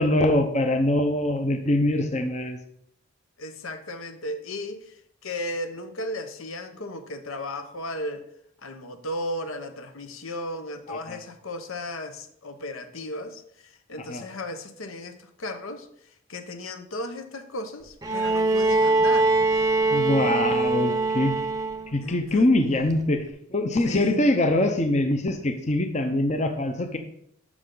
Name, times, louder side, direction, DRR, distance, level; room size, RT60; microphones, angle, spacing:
voice 1, 0.0-2.6 10.9-11.2 14.1-14.2 19.9-21.3 21.9-23.2 23.5-27.0, left 1 dB, 35° left, 6 dB, 0.7 m, -23 dB
voice 2, 3.4-5.0 5.2-8.2 8.6-15.9 16.3-19.3 22.0-22.5 23.8-24.2, left 1 dB, 80° left, 8 dB, 0.9 m, -35 dB
Bowed string instrument, 18.0-22.0 23.3-23.4, right 3 dB, 15° right, 0.7 m, -23 dB
12.5 x 5.2 x 3.9 m, 0.71 s
head